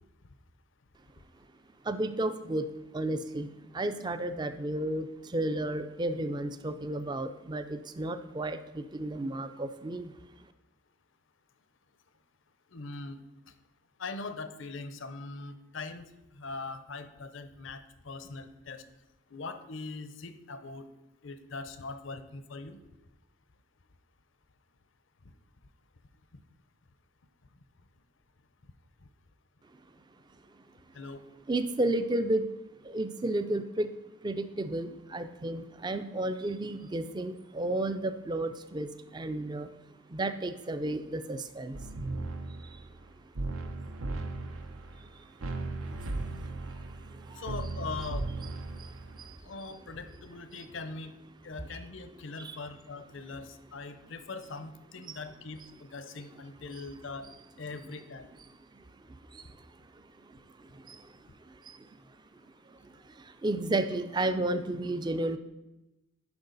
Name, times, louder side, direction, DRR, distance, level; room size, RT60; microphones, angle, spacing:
voice 1, 1.8-2.7 2.9-10.1 31.5-32.5 32.8-33.9 34.2-39.7 40.1-41.8 42.6-42.8 45.9-46.1 46.3-47.4 48.8-49.4 52.4-52.6 55.1-55.2 56.7-56.8 58.7-58.8 59.3-59.4 60.3-61.1 61.6-61.9 62.7-65.4, right 2 dB, 20° right, 10 dB, 0.4 m, -33 dB
voice 2, 12.7-13.2 14.0-16.1 16.3-18.8 19.3-20.9 21.2-22.8 30.9-31.2 47.4-48.3 49.4-51.1 51.4-57.3 57.6-58.3, left 3 dB, 70° left, 10 dB, 0.7 m, -41 dB
sound 1, 41.7-43.1 43.4-45.1 45.4-49.4, right 2 dB, 85° right, 0.8 m, -37 dB
10.5 x 5.4 x 4.0 m, 0.98 s
head